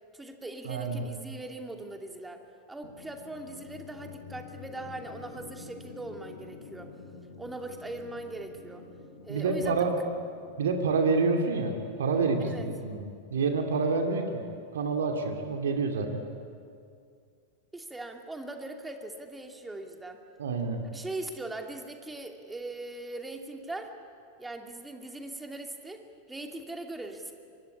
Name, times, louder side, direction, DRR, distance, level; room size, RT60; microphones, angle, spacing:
voice 1, 0.1-2.4 2.7-6.9 7.4-8.8 9.2-9.9 12.5-12.7 17.7-20.2 20.9-23.9 24.4-27.3, right 2 dB, 10° right, 4 dB, 2.6 m, -40 dB
voice 2, 0.7-1.0 9.3-9.9 10.6-14.4 14.7-16.2 20.4-20.8, right 4 dB, 65° right, 4 dB, 2.5 m, -28 dB
sound 1, 2.8-15.0, left 5 dB, 60° left, 2.7 m, -50 dB
25.5 x 23.5 x 9.8 m, 2.3 s
figure-of-eight pair, 90°, 0 cm